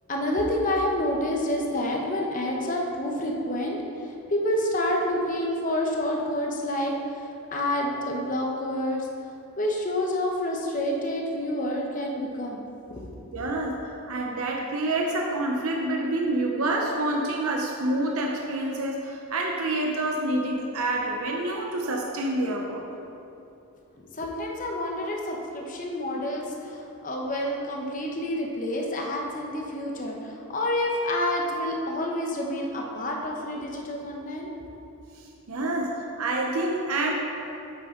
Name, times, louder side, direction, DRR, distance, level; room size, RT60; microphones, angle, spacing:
voice 1, 0.1-3.8 4.3-7.2 7.5-9.1 9.6-13.4 24.1-34.5, left 1 dB, 35° left, 0 dB, 0.9 m, -28 dB
voice 2, 13.3-22.8 29.5-29.7 34.8-34.9 35.2-37.1, right 2 dB, 80° right, 0 dB, 0.8 m, -28 dB
8.8 x 8.5 x 3.8 m, 2.8 s
head